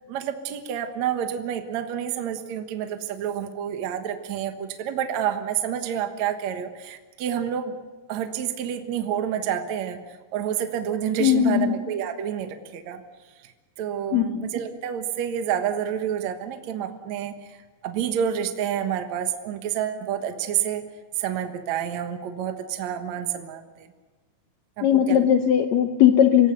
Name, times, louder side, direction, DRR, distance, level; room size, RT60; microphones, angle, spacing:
voice 1, 0.1-7.8 8.1-10.0 10.3-13.0 13.4-13.5 13.8-17.6 17.8-20.8 21.2-23.9 24.8-25.4, right 9 dB, 60° right, 6 dB, 2.3 m, -29 dB
voice 2, 11.2-11.7 14.1-14.5 24.8-26.5, left 10 dB, 70° left, 6 dB, 1.7 m, -19 dB
26.5 x 17.5 x 6.9 m, 1.3 s
omnidirectional pair, 4.3 m